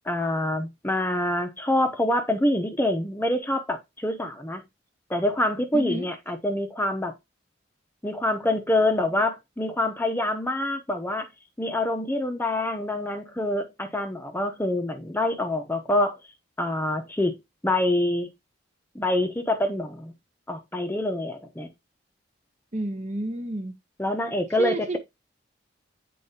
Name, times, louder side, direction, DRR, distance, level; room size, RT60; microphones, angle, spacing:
voice 1, 0.0-4.6 5.1-7.1 8.0-11.3 11.6-16.2 16.6-17.4 17.6-18.3 18.9-20.1 20.5-21.7 24.0-25.0, left 1 dB, 10° left, 0.8 m, -26 dB
voice 2, 5.7-6.1 22.7-23.8 24.5-25.0, right 1 dB, 35° right, 0.8 m, -30 dB
8.2 x 4.5 x 2.8 m
head